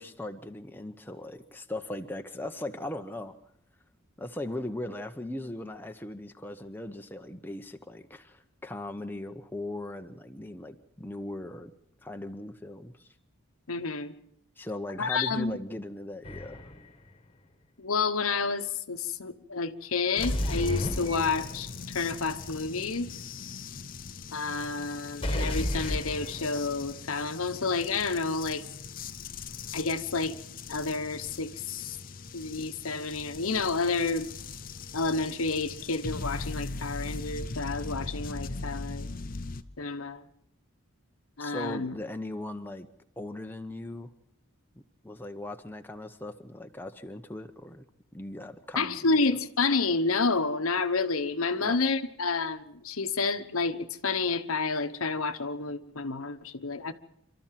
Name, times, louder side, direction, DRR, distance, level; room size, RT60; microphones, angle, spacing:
voice 1, 0.0-3.3 4.2-11.7 12.0-13.1 14.6-16.6 41.4-42.9 43.2-44.1 45.0-47.9 48.1-49.2 51.6-51.8, left 1 dB, 10° left, 0.9 m, -39 dB
voice 2, 13.7-14.1 15.0-15.6 17.8-23.1 24.3-28.6 29.7-30.4 30.7-31.6 32.3-34.3 34.9-39.1 39.8-40.2 41.4-41.9 48.7-56.9, left 4 dB, 90° left, 1.2 m, -29 dB
sound 1, 16.2-16.9 20.2-21.8 25.2-26.8, left 1 dB, 25° left, 1.5 m, -32 dB
sound 2, 20.2-39.6, left 4 dB, 40° left, 0.7 m, -40 dB
27.5 x 13.5 x 7.6 m
head